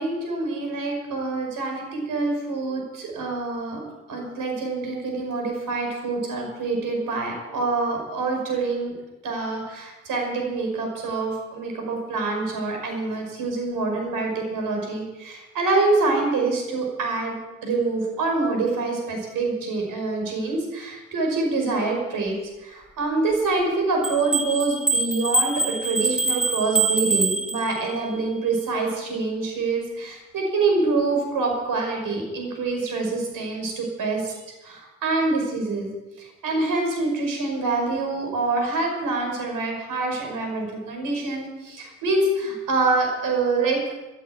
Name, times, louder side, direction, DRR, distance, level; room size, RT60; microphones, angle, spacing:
voice 1, 0.0-3.8 4.1-8.9 9.2-17.4 17.6-22.3 22.6-35.9 36.2-43.8, right 3 dB, 90° right, 2 dB, 5.5 m, -26 dB
sound 1, 24.0-28.0, right 3 dB, 5° right, 1.7 m, -24 dB
14.5 x 9.2 x 9.1 m, 1.1 s
cardioid pair, 90°, 32 cm